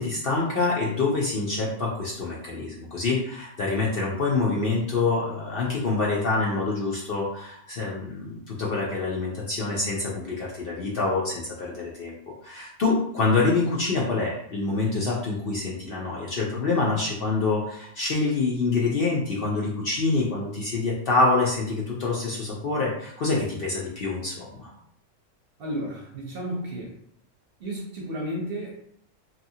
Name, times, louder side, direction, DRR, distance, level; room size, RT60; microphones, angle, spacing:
voice 1, 0.0-12.1 12.4-24.7, left 3 dB, 60° left, -4 dB, 0.6 m, -26 dB
voice 2, 25.6-27.0 27.6-28.8, equal, 55° right, -2 dB, 0.7 m, -32 dB
2.8 x 2.3 x 2.7 m, 0.70 s
omnidirectional pair, 1.4 m